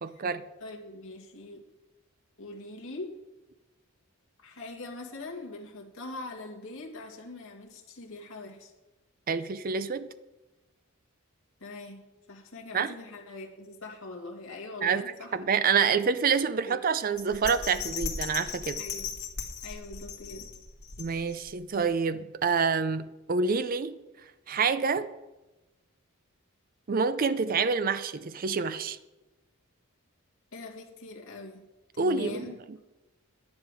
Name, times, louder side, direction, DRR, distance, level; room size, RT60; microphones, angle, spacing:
voice 1, 0.0-0.4 9.3-10.1 12.7-12.9 14.8-15.0 15.3-18.8 21.0-24.0 24.5-25.1 26.9-29.0 32.0-32.5, right 5 dB, 40° right, 0.5 m, -27 dB
voice 2, 0.6-1.6 2.4-3.2 4.4-8.7 11.6-16.4 16.6-16.8 18.8-19.2 19.6-20.5 30.5-31.7 31.9-32.6, left 2 dB, 65° left, 2.3 m, -43 dB
Bell, 17.2-21.5 21.9-22.0, left 5 dB, 85° left, 2.1 m, -37 dB
11.5 x 10.5 x 4.9 m
head